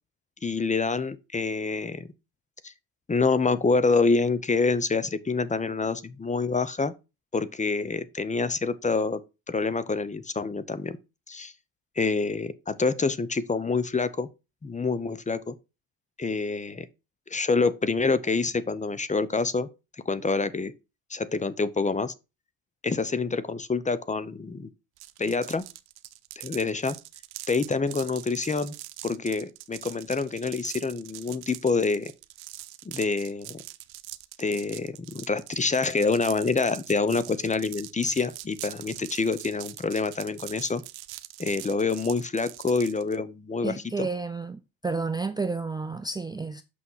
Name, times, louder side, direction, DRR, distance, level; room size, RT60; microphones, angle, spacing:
voice 1, 0.4-2.1 2.6-2.7 3.1-6.9 7.3-9.2 9.5-11.0 11.3-11.5 12.0-14.3 14.6-15.5 16.2-16.9 17.3-19.7 20.1-20.7 21.1-22.1 22.8-24.7 25.2-25.6 26.4-27.0 27.5-28.7 29.0-32.1 32.8-33.6 34.4-40.8 41.4-44.1, left 4 dB, 20° left, 0.8 m, -27 dB
sound 1, 25.0-43.2, right 17 dB, 75° right, 0.8 m, -43 dB
voice 2, 43.6-46.6, right 4 dB, 10° right, 0.5 m, -31 dB
6.3 x 5.8 x 5.6 m
cardioid pair, 95°, 38 cm